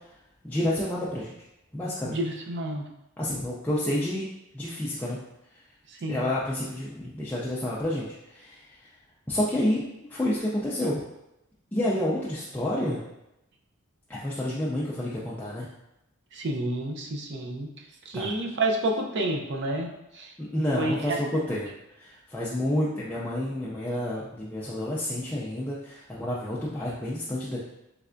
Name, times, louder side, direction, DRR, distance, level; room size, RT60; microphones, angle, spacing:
voice 1, 0.4-1.3 1.7-2.2 3.2-4.3 4.5-5.2 6.1-8.6 9.3-11.0 11.7-13.0 14.2-15.7 18.1-18.3 20.4-21.7 22.0-27.6, left 1 dB, 10° left, -7 dB, 0.4 m, -29 dB
voice 2, 2.0-2.9 5.9-6.3 16.3-17.7 18.1-19.9 20.1-20.3 20.8-21.2, right 2 dB, 55° right, 1 dB, 0.5 m, -29 dB
3.3 x 3.2 x 2.5 m, 0.88 s
head